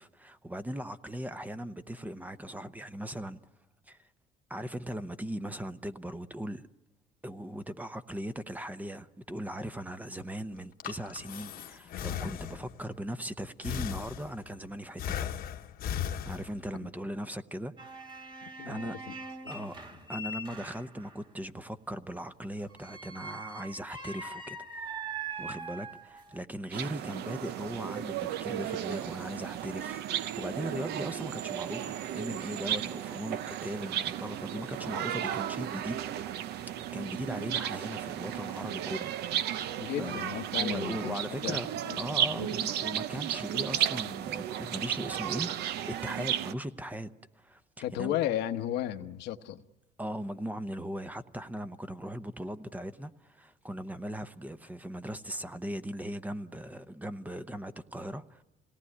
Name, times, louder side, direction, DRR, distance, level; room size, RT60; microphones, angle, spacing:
voice 1, 0.0-3.4 3.9-4.1 4.5-6.6 7.2-15.4 16.2-17.9 18.6-18.9 19.5-19.8 20.1-25.0 25.4-39.2 40.0-40.2 40.6-41.7 42.0-45.6 45.8-47.6 48.0-48.2 50.0-58.4, right 1 dB, 10° right, 0.8 m, -39 dB
Breathing, 10.6-12.9 13.6-14.6 15.0-16.8, left 9 dB, 65° left, 1.1 m, -37 dB
sound 1, 17.8-21.2 22.7-26.4, right 3 dB, 30° right, 2.0 m, -42 dB
voice 2, 18.4-19.0 19.6-19.7 39.8-42.0 42.3-42.5 47.8-49.6, left 12 dB, 85° left, 1.1 m, -34 dB
sound 2, 26.7-46.5, right 10 dB, 75° right, 0.8 m, -34 dB
27.0 x 18.5 x 9.8 m
cardioid pair, 110°, 17 cm